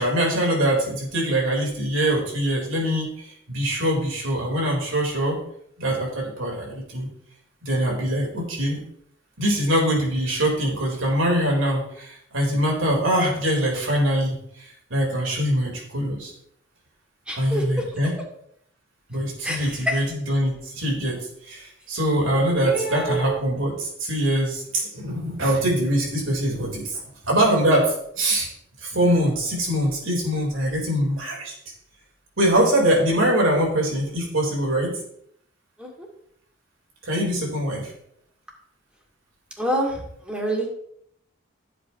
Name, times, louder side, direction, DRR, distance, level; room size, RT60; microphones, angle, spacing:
voice 1, 0.0-5.4 5.8-7.1 7.6-8.8 9.4-16.3 17.4-18.2 19.1-27.0 27.2-28.5 28.8-31.5 32.4-35.0 37.0-37.9, right 1 dB, 80° right, -2 dB, 4.0 m, -23 dB
voice 2, 17.3-17.8 19.4-20.0 22.7-23.3 35.8-36.1 39.6-40.7, right 1 dB, 5° right, -1 dB, 2.3 m, -27 dB
15.5 x 8.1 x 3.0 m, 0.70 s
head